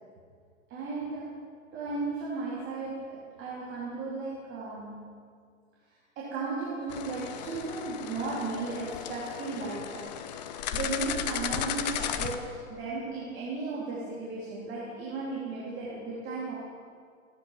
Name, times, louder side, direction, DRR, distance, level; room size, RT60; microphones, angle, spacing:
voice 1, 0.7-5.3 6.1-10.2 10.5-16.5, right 3 dB, 25° right, -7 dB, 3.1 m, -35 dB
sound 1, 6.9-12.4, left 9 dB, 30° left, 0.7 m, -35 dB
15.0 x 9.8 x 5.9 m, 2.1 s
figure-of-eight pair, 125°, 42 cm